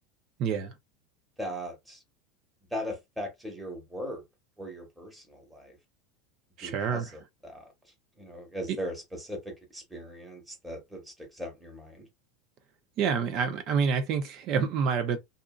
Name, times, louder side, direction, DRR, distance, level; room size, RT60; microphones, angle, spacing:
voice 1, 0.4-0.7 6.6-7.1 8.7-8.8 13.0-15.2, right 6 dB, 50° right, 0.7 m, -27 dB
voice 2, 1.4-2.0 2.7-4.2 4.6-5.8 6.6-7.7 8.2-12.1, equal, 5° right, 1.2 m, -39 dB
2.7 x 2.5 x 2.4 m
supercardioid pair, 125°, 0 cm